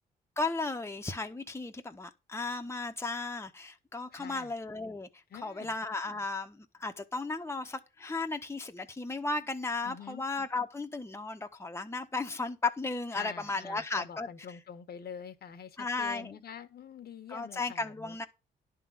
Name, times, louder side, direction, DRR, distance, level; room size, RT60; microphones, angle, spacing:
voice 1, 0.4-5.1 5.4-14.3 15.8-16.3 17.3-18.3, left 3 dB, 15° left, 1.2 m, -35 dB
voice 2, 4.1-4.5 5.3-5.7 9.8-10.2 13.1-18.2, left 8 dB, 60° left, 1.4 m, -46 dB
11.0 x 3.9 x 7.2 m
cardioid pair, 75°, 18 cm